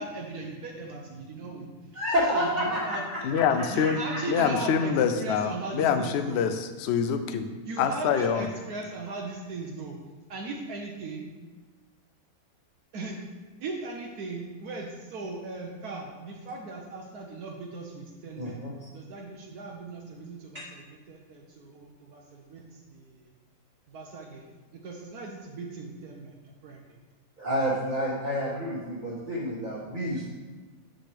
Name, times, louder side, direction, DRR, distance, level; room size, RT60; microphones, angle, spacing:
voice 1, 0.0-1.7 2.3-3.0 3.7-6.4 7.7-10.0 10.3-11.2 12.9-13.2 13.6-23.3 23.9-24.5 24.8-26.4 26.6-26.8, right 3 dB, 80° right, -1 dB, 1.3 m, -38 dB
voice 2, 1.9-3.4 3.8-4.2 18.4-18.9 20.5-20.6 27.4-30.3, equal, 35° right, -7 dB, 1.2 m, -29 dB
voice 3, 3.2-4.0 4.3-7.5 7.8-8.5, left 7 dB, 65° left, 8 dB, 0.7 m, -25 dB
7.6 x 6.2 x 3.4 m, 1.3 s
omnidirectional pair, 1.6 m